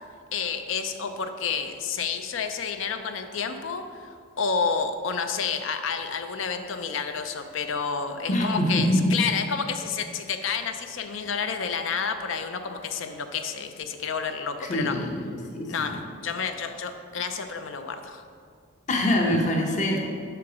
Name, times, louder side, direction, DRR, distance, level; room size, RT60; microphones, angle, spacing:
voice 1, 0.3-4.1 4.4-15.0 15.7-18.2, left 6 dB, 70° left, 7 dB, 0.5 m, -30 dB
voice 2, 8.3-9.2 14.6-15.9 18.9-20.0, left 1 dB, 35° left, 0 dB, 0.7 m, -24 dB
6.0 x 4.5 x 4.8 m, 2.2 s
head